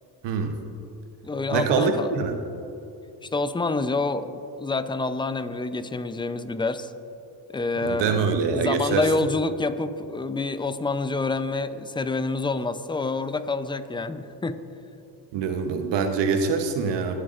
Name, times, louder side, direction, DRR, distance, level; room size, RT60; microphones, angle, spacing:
voice 1, 0.2-0.5 1.5-2.4 7.8-9.1 15.3-17.2, right 5 dB, 70° right, 6 dB, 1.0 m, -24 dB
voice 2, 1.2-2.2 3.2-6.9 7.5-14.6, left 3 dB, 10° left, 11 dB, 0.5 m, -27 dB
23.5 x 7.9 x 2.5 m, 2.8 s
supercardioid pair, 80°, 44 cm